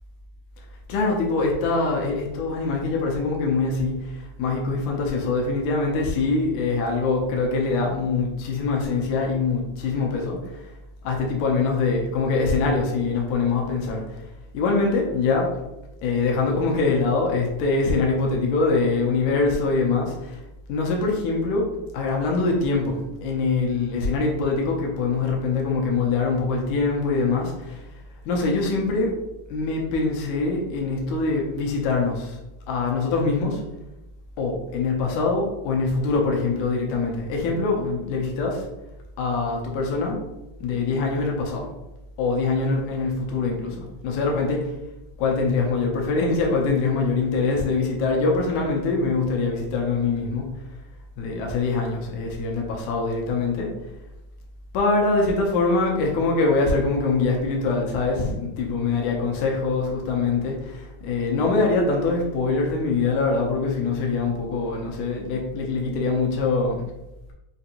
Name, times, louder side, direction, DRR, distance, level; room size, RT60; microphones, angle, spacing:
voice 1, 0.9-10.6 11.0-14.2 14.5-15.5 16.0-20.4 20.7-21.7 21.9-27.8 28.3-29.1 29.5-32.4 32.7-33.6 34.4-38.7 39.2-40.2 40.6-41.7 42.2-44.7 45.2-50.5 51.2-53.7 54.7-66.9, left 3 dB, 85° left, 0 dB, 2.1 m, -23 dB
5.6 x 2.5 x 2.8 m, 0.95 s
omnidirectional pair, 3.3 m